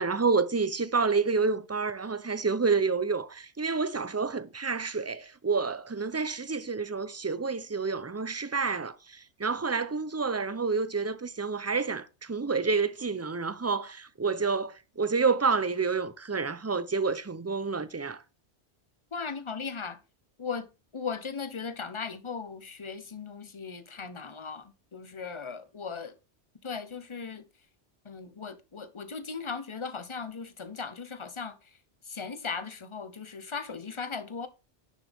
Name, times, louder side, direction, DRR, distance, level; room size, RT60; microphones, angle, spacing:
voice 1, 0.0-8.9 9.4-18.2, right 4 dB, 20° right, 0.4 m, -29 dB
voice 2, 19.1-20.0 20.4-20.7 20.9-26.1 26.6-27.4 28.0-31.6 32.1-34.5, left 5 dB, 30° left, 1.0 m, -37 dB
10.5 x 7.3 x 3.5 m
omnidirectional pair, 1.2 m